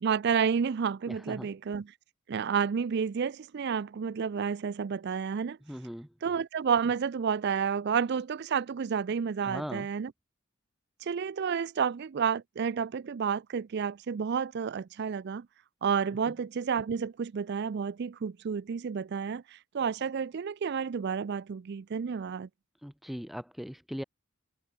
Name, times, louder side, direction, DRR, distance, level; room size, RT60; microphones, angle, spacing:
voice 1, 0.0-1.9 2.3-5.6 6.2-10.1 11.0-15.5 15.8-22.5, right 6 dB, 55° right, 0.4 m, -30 dB
voice 2, 1.1-1.5 5.6-6.1 9.4-9.9 22.8-24.0, equal, ahead, 0.9 m, -39 dB
head